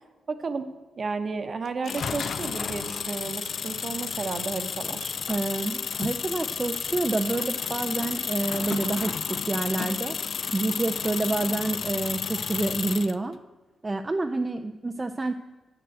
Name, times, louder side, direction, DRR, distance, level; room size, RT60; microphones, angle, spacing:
voice 1, 0.3-0.7 1.0-5.1, right 4 dB, 45° right, 9 dB, 0.9 m, -32 dB
sound 1, 1.8-13.2, left 6 dB, 60° left, 0.4 m, -31 dB
voice 2, 5.3-10.2 10.5-13.4 13.8-15.3, right 2 dB, 25° right, 7 dB, 0.4 m, -28 dB
7.6 x 6.8 x 7.7 m, 1.2 s
cardioid pair, 90°, 0 cm